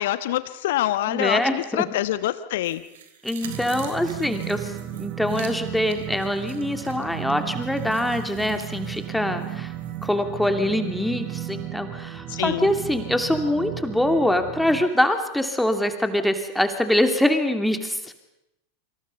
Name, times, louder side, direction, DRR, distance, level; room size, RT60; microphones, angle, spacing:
voice 1, 0.0-2.8 12.3-12.7, left 14 dB, 60° left, 13 dB, 1.1 m, -25 dB
voice 2, 1.1-1.6 3.2-9.7 10.0-18.1, left 1 dB, 5° left, 6 dB, 2.8 m, -24 dB
sound 1, 2.6-10.1 10.5-10.6, right 9 dB, 60° right, 3.7 m, -46 dB
sound 2, 3.4-14.8, right 11 dB, 40° right, 3.8 m, -34 dB
28.5 x 26.5 x 5.6 m, 0.86 s
figure-of-eight pair, 85°, 0 cm